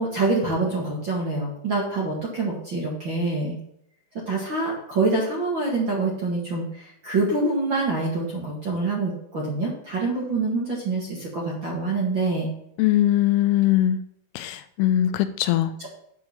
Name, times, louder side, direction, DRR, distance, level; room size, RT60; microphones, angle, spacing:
voice 1, 0.0-3.6 4.3-12.5 15.8-15.9, right 3 dB, 40° right, -3 dB, 1.8 m, -26 dB
voice 2, 12.8-14.0 14.4-15.7, left 13 dB, 85° left, 11 dB, 2.5 m, -21 dB
9.3 x 4.8 x 7.0 m, 0.73 s
omnidirectional pair, 4.6 m